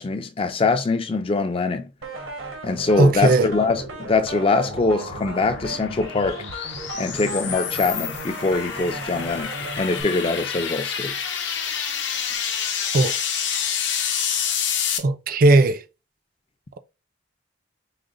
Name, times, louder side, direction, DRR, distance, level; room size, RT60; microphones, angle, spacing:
voice 1, 0.0-1.9 2.6-6.4 7.0-11.1, left 3 dB, 30° left, 0.4 m, -23 dB
sound 1, 2.0-10.0, right 3 dB, 85° right, 1.4 m, -36 dB
voice 2, 3.0-3.5 12.9-13.2 15.0-15.8, right 2 dB, 45° right, 0.4 m, -17 dB
sound 2, 3.7-15.0, left 8 dB, 65° left, 0.7 m, -29 dB
4.8 x 2.1 x 3.8 m
head